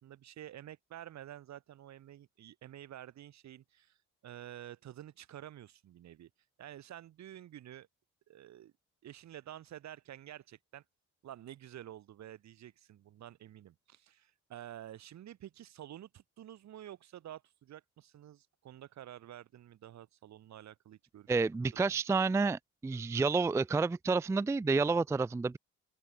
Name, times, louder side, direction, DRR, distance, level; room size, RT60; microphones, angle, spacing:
voice 1, 0.0-4.0 4.2-6.3 6.6-7.9 8.3-8.7 9.0-10.8 11.2-21.3 21.8-22.0, right 12 dB, 65° right, 1.3 m, -50 dB
voice 2, 21.3-25.6, right 4 dB, 10° right, 0.4 m, -29 dB
open air
cardioid pair, 90°, 30 cm